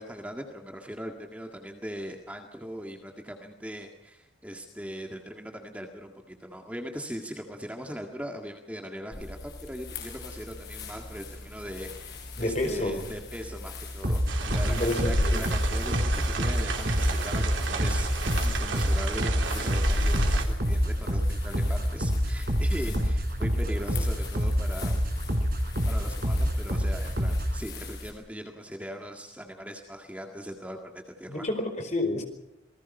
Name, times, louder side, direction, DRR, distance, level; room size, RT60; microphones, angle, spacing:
voice 1, 0.0-18.1 18.4-24.9 25.9-31.5, equal, 5° right, 3 dB, 1.9 m, -40 dB
sound 1, 9.1-28.1, left 1 dB, 55° left, 6.1 m, -35 dB
voice 2, 12.4-13.0 14.6-15.4 31.3-32.2, left 1 dB, 35° left, 5 dB, 4.9 m, -29 dB
sound 2, 14.0-27.6, equal, 50° right, 3.9 m, -27 dB
sound 3, 14.3-20.5, right 4 dB, 85° right, 3.4 m, -33 dB
27.5 x 20.5 x 5.6 m, 0.92 s
head